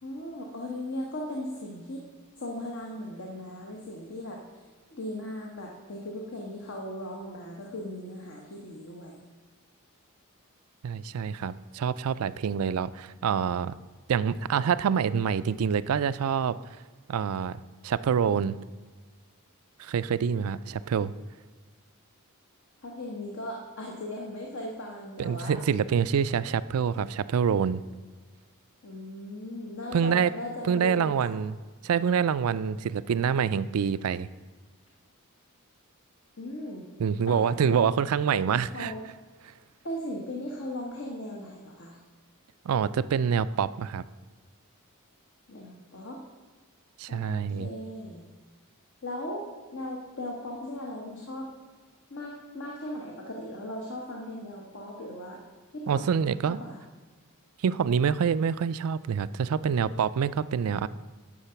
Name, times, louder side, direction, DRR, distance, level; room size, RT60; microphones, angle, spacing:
voice 1, 0.0-2.0 2.4-4.4 4.9-9.2 22.8-25.6 28.8-31.4 36.4-36.9 37.3-37.9 38.3-38.4 38.7-39.1 39.8-42.0 45.5-46.2 47.1-48.2 49.0-49.5 49.7-51.5 52.1-55.4 55.7-56.1 56.4-56.8, left 1 dB, 60° left, -1 dB, 1.3 m, -38 dB
voice 2, 10.8-13.7 14.1-16.6 17.1-18.6 19.8-21.1 25.2-27.8 29.9-30.3 30.6-31.5 31.8-34.3 37.0-38.9 42.7-44.0 47.0-47.7 55.9-56.6 57.6-60.9, right 7 dB, 75° right, 16 dB, 0.4 m, -26 dB
9.9 x 6.6 x 5.7 m, 1.4 s
head